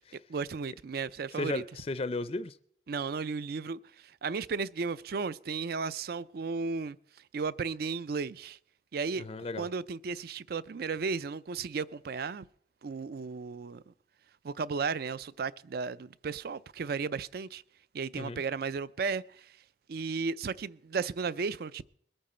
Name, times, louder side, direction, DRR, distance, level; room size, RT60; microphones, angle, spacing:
voice 1, 0.3-1.6 2.9-7.0 7.3-8.6 8.9-9.3 9.6-12.4 12.8-13.9 14.4-17.6 17.9-19.5 19.9-21.8, right 5 dB, 55° right, 0.4 m, -34 dB
voice 2, 1.3-2.6 9.2-9.7 18.2-18.4, left 2 dB, 30° left, 0.4 m, -35 dB
21.5 x 8.8 x 4.3 m
head